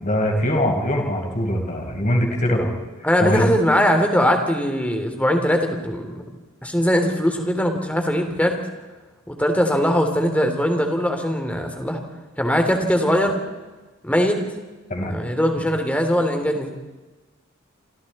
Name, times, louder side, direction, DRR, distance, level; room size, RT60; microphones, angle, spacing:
voice 1, 0.0-2.7 3.2-3.5 14.9-15.2, equal, 40° left, 2 dB, 4.7 m, -22 dB
voice 2, 3.0-6.2 6.6-8.6 9.3-12.0 12.4-13.4 14.0-14.4 15.0-16.7, equal, 5° left, 4 dB, 3.1 m, -21 dB
27.5 x 27.0 x 4.3 m, 1.2 s
head